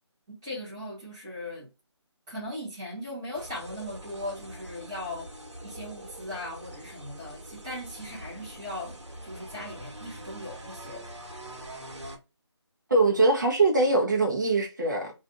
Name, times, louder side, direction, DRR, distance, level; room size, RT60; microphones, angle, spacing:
voice 1, 0.3-1.7 2.3-5.3 5.6-9.0 9.2-11.0, left 1 dB, 10° right, 0.9 m, -38 dB
sound 1, 3.3-12.2, right 1 dB, 80° right, 1.1 m, -44 dB
voice 2, 12.9-15.1, right 2 dB, 40° right, 0.8 m, -22 dB
2.5 x 2.3 x 3.7 m
figure-of-eight pair, 175°, 15 cm